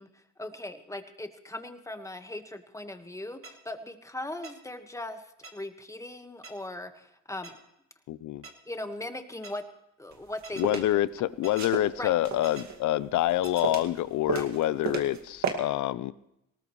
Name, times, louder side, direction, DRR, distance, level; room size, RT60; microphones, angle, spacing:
voice 1, 0.0-7.6 8.6-9.6 10.0-10.9 12.0-12.1 14.3-14.4, left 1 dB, 10° left, 7 dB, 1.5 m, -39 dB
sound 1, 3.4-3.5 4.4-4.5 5.4-5.5 6.4-6.5 7.4-7.5 8.4-8.5 9.4-9.5 10.4-10.6 11.4-11.6 12.4-12.6 13.4-13.6, right 3 dB, 45° right, 2.7 m, -44 dB
voice 2, 8.1-8.4 10.6-16.1, left 14 dB, 80° left, 17 dB, 0.7 m, -27 dB
sound 2, 10.1-10.9 11.5-12.8 13.2-14.0 14.3-15.2 15.4-15.5, right 6 dB, 65° right, 2.2 m, -32 dB
19.5 x 18.5 x 3.2 m, 0.81 s
cardioid pair, 90°, 30 cm